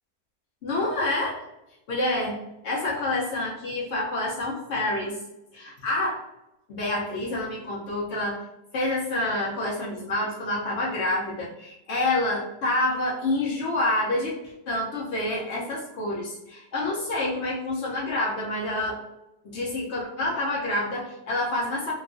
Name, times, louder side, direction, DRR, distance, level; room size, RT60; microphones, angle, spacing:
voice 1, 0.6-1.4 1.9-5.2 5.5-6.2 6.7-8.4 8.7-14.4 14.7-19.0 19.4-21.9, left 2 dB, 85° left, -4 dB, 0.6 m, -28 dB
2.8 x 2.3 x 2.5 m, 0.92 s
omnidirectional pair, 1.9 m